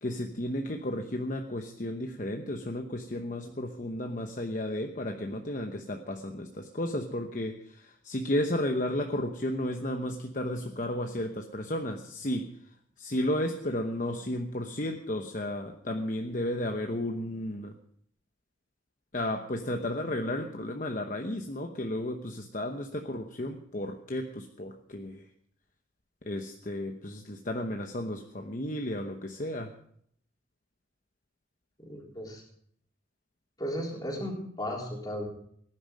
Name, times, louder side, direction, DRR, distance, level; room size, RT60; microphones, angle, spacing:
voice 1, 0.0-12.5 13.0-17.7 19.1-25.3 26.2-29.7, left 1 dB, 45° left, 4 dB, 1.0 m, -33 dB
voice 2, 31.8-32.4 33.6-35.3, equal, 20° left, -1 dB, 3.8 m, -35 dB
18.5 x 11.0 x 5.2 m, 0.66 s
head